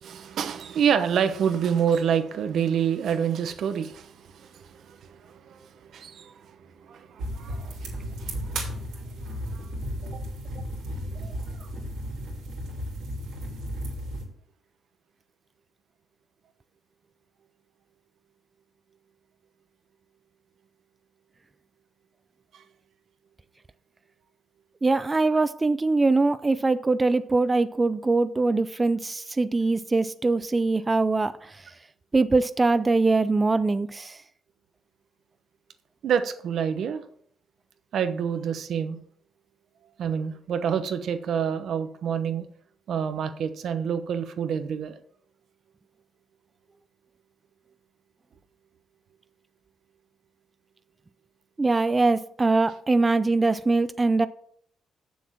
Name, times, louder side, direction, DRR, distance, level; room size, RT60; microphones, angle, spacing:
voice 1, 0.0-10.2 11.0-11.4 22.5-22.6 36.0-37.0 37.9-39.0 40.0-42.5 42.9-45.0, right 8 dB, 65° right, 1.0 m, -28 dB
sound 1, 7.2-14.2, equal, 85° right, 3.0 m, -34 dB
voice 2, 24.8-31.6 32.1-34.2 51.6-54.3, right 3 dB, 25° right, 0.4 m, -22 dB
7.1 x 7.0 x 5.9 m
cardioid pair, 90°, 0 cm